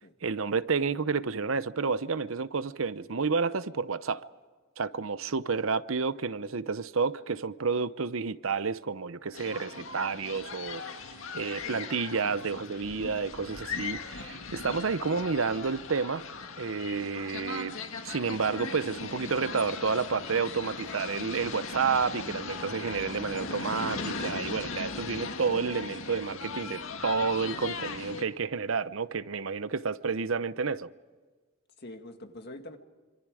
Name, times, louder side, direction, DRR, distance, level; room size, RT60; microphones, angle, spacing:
voice 1, 0.2-4.2 4.8-10.8 11.3-16.2 16.6-17.8 18.0-30.9, right 5 dB, 80° right, 0.8 m, -30 dB
sound 1, 9.3-28.2, left 4 dB, 80° left, 1.9 m, -38 dB
voice 2, 12.2-12.7 25.5-25.7 31.8-32.8, left 1 dB, 50° left, 2.0 m, -46 dB
26.0 x 26.0 x 4.9 m
head